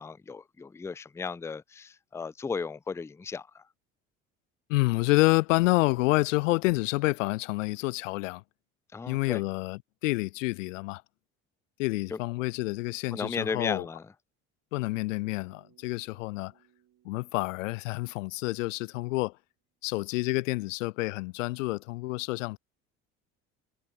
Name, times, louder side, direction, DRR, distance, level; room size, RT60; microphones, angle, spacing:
voice 1, 0.0-3.6 8.9-9.4 12.1-12.2 13.1-14.1, left 5 dB, 5° left, 0.4 m, -35 dB
voice 2, 4.7-8.4 9.1-11.0 11.8-13.9 14.7-16.5 17.1-19.3 19.8-22.6, left 22 dB, 70° left, 0.5 m, -28 dB
Bass guitar, 14.7-19.1, right 12 dB, 50° right, 5.7 m, -65 dB
hypercardioid pair, 65°, 39 cm